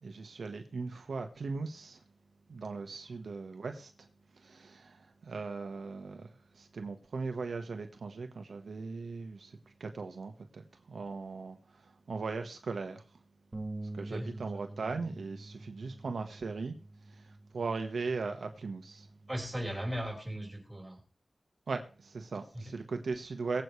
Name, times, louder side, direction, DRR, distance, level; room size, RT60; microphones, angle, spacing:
voice 1, 0.0-2.0 2.5-4.1 4.3-13.0 13.9-16.7 17.1-19.1 21.7-23.6, right 4 dB, 85° right, 1.4 m, -39 dB
Bass guitar, 13.5-19.8, right 2 dB, 30° right, 1.5 m, -46 dB
voice 2, 19.3-21.0 22.5-22.7, equal, 10° right, 5.3 m, -37 dB
22.0 x 8.3 x 3.2 m
wide cardioid pair, 110°, 0 cm